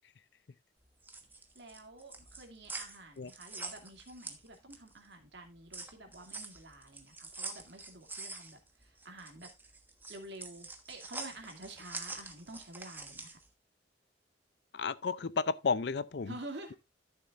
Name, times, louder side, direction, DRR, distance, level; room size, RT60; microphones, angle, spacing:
sound 1, 0.8-5.0 5.3-13.5, right 3 dB, 10° right, 1.2 m, -45 dB
voice 1, 1.5-9.5 10.1-13.4 16.3-16.7, right 2 dB, 65° right, 2.5 m, -49 dB
voice 2, 14.7-16.3, left 5 dB, 65° left, 0.5 m, -32 dB
12.5 x 7.2 x 2.5 m
head